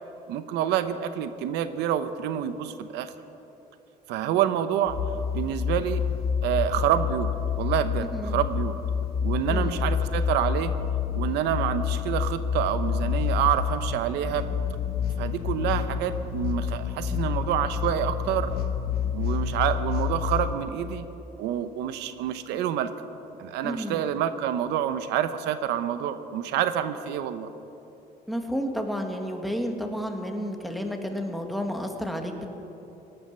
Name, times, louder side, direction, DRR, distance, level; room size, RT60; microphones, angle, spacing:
voice 1, 0.3-3.1 4.1-5.0 5.3-6.0 6.4-8.8 9.2-10.7 11.1-14.4 15.2-18.5 19.1-21.1 21.4-22.9 23.4-27.5, right 10 dB, 90° right, 11 dB, 0.8 m, -27 dB
sound 1, 4.9-20.5, left 7 dB, 65° left, 1.2 m, -28 dB
voice 2, 8.0-8.4 9.5-9.8 23.6-24.0 28.3-32.5, equal, ahead, 3 dB, 1.7 m, -31 dB
18.0 x 11.5 x 6.7 m, 3.0 s
cardioid pair, 110°, 17 cm